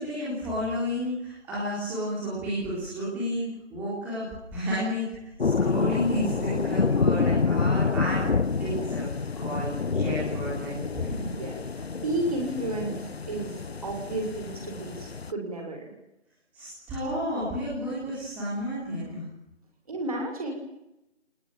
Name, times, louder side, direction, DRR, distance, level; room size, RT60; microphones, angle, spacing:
voice 1, 0.0-4.3 4.5-8.3 8.6-9.1 9.3-11.3 16.5-19.2, equal, 5° right, -9 dB, 3.8 m, -31 dB
sound 1, 5.4-15.3, left 4 dB, 60° left, 0.9 m, -28 dB
voice 2, 11.1-13.0 13.3-15.9 19.9-20.5, right 2 dB, 30° right, 2 dB, 6.6 m, -32 dB
27.0 x 20.0 x 9.0 m, 0.87 s
figure-of-eight pair, 170°, 35 cm